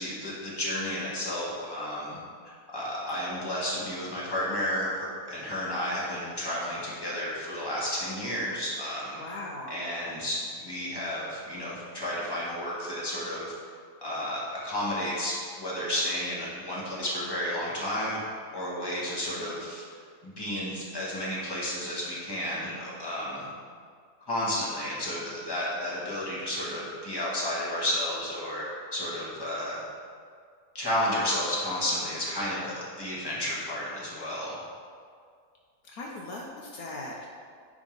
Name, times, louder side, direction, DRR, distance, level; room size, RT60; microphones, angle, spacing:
voice 1, 0.0-2.2 2.4-9.2 9.7-13.5 14.0-18.2 18.5-19.8 20.2-23.5 24.3-28.7 28.9-29.8 30.7-34.6, left 1 dB, 15° left, -7 dB, 1.7 m, -32 dB
voice 2, 9.2-9.9 35.8-37.3, left 2 dB, 70° left, -2 dB, 1.2 m, -39 dB
9.8 x 3.8 x 5.2 m, 2.1 s
omnidirectional pair, 1.7 m